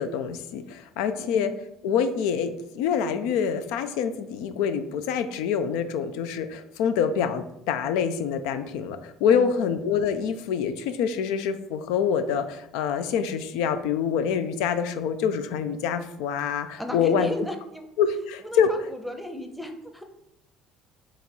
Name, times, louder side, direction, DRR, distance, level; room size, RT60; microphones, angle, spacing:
voice 1, 0.0-1.5 1.8-17.5 18.0-18.7, left 7 dB, 80° left, 10 dB, 0.4 m, -26 dB
voice 2, 1.2-1.5 9.3-9.7 16.8-17.9 18.4-20.0, equal, ahead, 6 dB, 0.7 m, -35 dB
3.8 x 3.0 x 4.4 m, 0.80 s
supercardioid pair, 80°, 0 cm